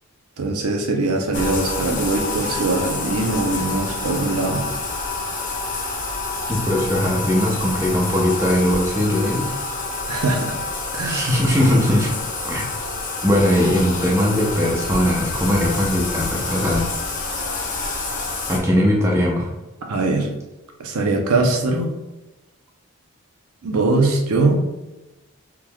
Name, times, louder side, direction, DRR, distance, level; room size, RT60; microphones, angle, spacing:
voice 1, 0.4-4.7 10.1-10.6 10.9-11.3 19.9-20.3 20.8-21.9 23.6-24.6, right 2 dB, 85° right, 2 dB, 0.6 m, -21 dB
Bathtub (filling or washing), 1.3-18.6, left 3 dB, 35° left, 0.5 m, -28 dB
voice 2, 6.5-9.5 11.0-12.1 12.4-12.7 13.2-16.9 18.5-19.5, left 1 dB, 15° right, -2 dB, 0.6 m, -19 dB
3.6 x 3.0 x 2.2 m, 1.0 s
head